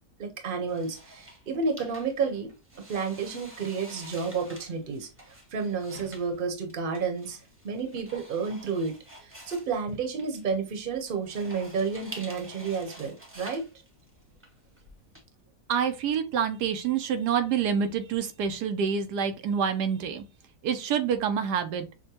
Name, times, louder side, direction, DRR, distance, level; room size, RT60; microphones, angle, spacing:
voice 1, 0.2-2.5 2.9-5.1 5.5-7.4 7.6-8.9 9.2-13.6, right 5 dB, 40° right, 1.0 m, -31 dB
sound 1, 0.7-15.2, right 1 dB, 10° right, 0.9 m, -48 dB
voice 2, 15.7-20.2 20.6-21.9, right 7 dB, 85° right, 1.3 m, -27 dB
6.4 x 2.2 x 2.8 m
omnidirectional pair, 1.7 m